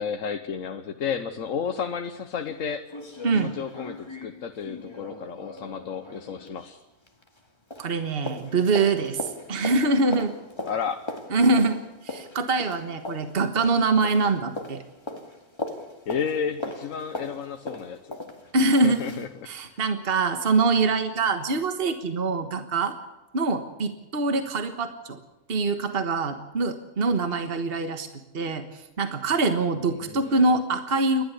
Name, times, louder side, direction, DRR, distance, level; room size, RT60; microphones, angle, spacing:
voice 1, 0.0-2.8 3.3-6.8 10.6-11.0 16.1-18.2 18.8-19.3 19.7-19.8 29.9-30.5, left 7 dB, 80° left, 6 dB, 1.4 m, -32 dB
sound 1, 2.0-2.1 2.5-2.6 2.9-7.5 7.7-19.3 19.7-19.8, left 2 dB, 20° left, 2.2 m, -39 dB
voice 2, 3.2-3.5 7.8-10.3 11.3-11.8 12.0-14.8 18.5-22.9 23.3-25.2 25.5-28.1 28.3-31.2, right 3 dB, 45° right, 7 dB, 1.6 m, -24 dB
29.5 x 12.5 x 8.2 m, 1.0 s
omnidirectional pair, 1.4 m